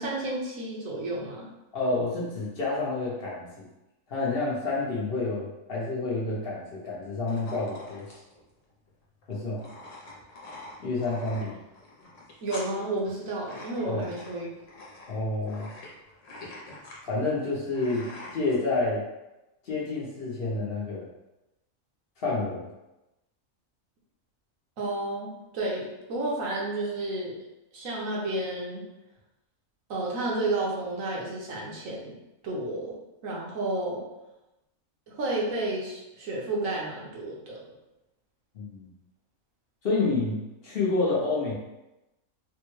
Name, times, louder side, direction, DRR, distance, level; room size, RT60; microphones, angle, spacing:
voice 1, 0.0-1.5 12.4-14.5 24.8-27.4 27.7-28.8 29.9-32.1 32.4-32.9 33.2-34.0 35.1-37.6, right 2 dB, 75° right, -4 dB, 1.2 m, -31 dB
voice 2, 1.7-3.7 4.1-8.2 9.3-9.6 10.8-11.6 13.8-14.1 15.1-15.7 17.0-19.0 19.6-21.1 22.2-22.7 38.5-38.9 39.8-41.5, left 3 dB, 50° left, -5 dB, 0.8 m, -29 dB
sound 1, 7.3-18.6, left 2 dB, 70° left, 1.1 m, -46 dB
3.4 x 2.1 x 3.0 m, 0.97 s
omnidirectional pair, 1.4 m